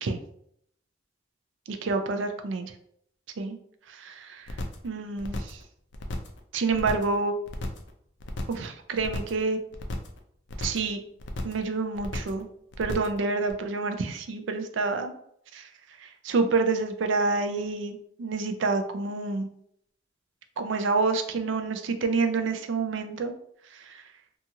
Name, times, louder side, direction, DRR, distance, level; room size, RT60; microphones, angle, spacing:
voice 1, 1.7-2.7 3.4-3.6 3.9-4.6 4.8-5.6 6.5-7.4 8.5-9.6 10.6-11.0 11.4-12.5 12.8-15.1 15.5-15.7 16.0-19.5 20.6-23.3 23.7-24.0, right 3 dB, 85° right, 7 dB, 0.4 m, -28 dB
sound 1, 4.5-4.9 5.2-5.6 5.9-6.4 6.7-7.2 7.5-7.9 8.2-8.7 9.0-9.4 9.7-10.2 10.5-10.9 11.2-11.7 12.0-12.4 12.7-13.2 13.5-13.6, left 1 dB, 75° left, 0.4 m, -35 dB
2.8 x 2.3 x 2.8 m, 0.69 s
head